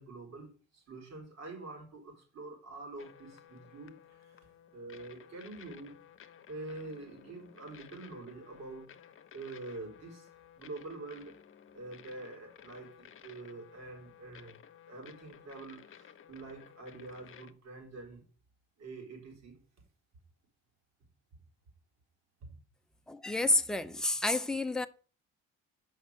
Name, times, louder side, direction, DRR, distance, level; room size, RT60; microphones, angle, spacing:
voice 1, 0.0-4.5 4.7-6.0 6.5-8.9 9.3-10.3 10.6-11.3 11.7-14.5 14.9-18.2 18.8-19.6 22.4-22.5, right 3 dB, 60° right, 4.0 m, -46 dB
sound 1, 3.0-17.5, left 9 dB, 45° left, 1.0 m, -56 dB
voice 2, 23.1-24.9, left 2 dB, ahead, 0.7 m, -29 dB
6.6 x 5.6 x 6.4 m
supercardioid pair, 75°, 30 cm